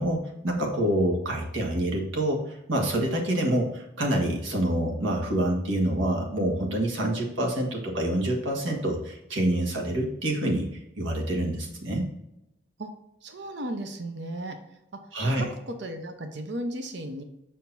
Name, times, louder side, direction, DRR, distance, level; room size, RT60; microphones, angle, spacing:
voice 1, 0.0-10.7 11.0-12.0 15.1-15.5, right 1 dB, 80° right, 0 dB, 1.5 m, -27 dB
voice 2, 13.2-14.8 15.2-17.2, right 1 dB, 65° right, 6 dB, 0.8 m, -35 dB
6.6 x 5.7 x 2.6 m, 0.86 s
head